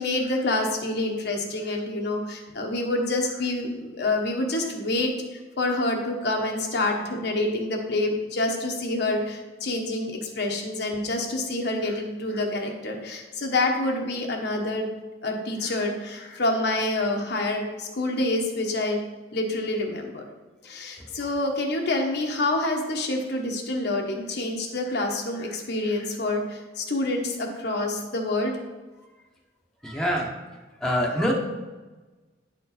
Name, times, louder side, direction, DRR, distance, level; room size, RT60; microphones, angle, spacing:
voice 1, 0.0-14.9 15.2-19.0 19.3-20.3 20.6-28.6, left 2 dB, 65° left, 1 dB, 1.1 m, -27 dB
voice 2, 29.8-30.3 30.8-31.3, equal, 5° left, -2 dB, 0.9 m, -24 dB
9.5 x 4.5 x 4.1 m, 1.2 s
head